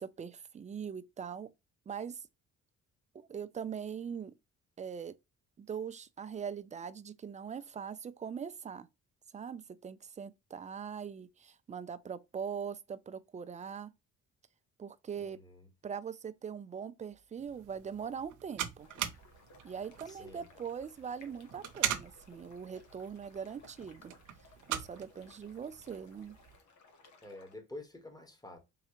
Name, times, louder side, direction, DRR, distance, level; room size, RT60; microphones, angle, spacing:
voice 1, 0.0-1.5 1.9-2.2 3.1-4.3 4.8-5.2 5.6-8.9 9.3-13.9 14.8-15.4 15.8-18.9 19.6-24.1 24.7-26.4, right 7 dB, 25° right, 0.4 m, -41 dB
voice 2, 15.2-15.7 20.1-20.5 27.2-28.6, left 1 dB, 10° left, 1.4 m, -49 dB
sound 1, 17.4-26.6, right 11 dB, 85° right, 0.7 m, -42 dB
sound 2, 18.8-27.6, left 3 dB, 70° left, 1.2 m, -60 dB
3.8 x 3.2 x 3.0 m
cardioid pair, 90°, 30 cm